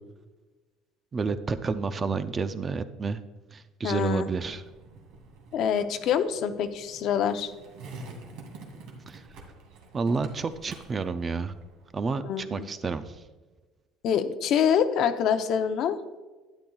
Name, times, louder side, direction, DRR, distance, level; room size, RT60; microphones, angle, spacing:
voice 1, 1.1-3.2 3.5-4.6 9.1-9.2 9.9-11.5 11.9-13.2, right 4 dB, 25° right, 11 dB, 0.4 m, -30 dB
voice 2, 3.8-4.3 5.5-7.5 12.2-12.7 14.0-16.0, left 8 dB, 50° left, 9 dB, 0.6 m, -25 dB
Skateboard, 3.9-11.9, right 3 dB, 70° right, 2.0 m, -48 dB
12.0 x 10.0 x 2.3 m, 1.2 s
cardioid pair, 150°, 0 cm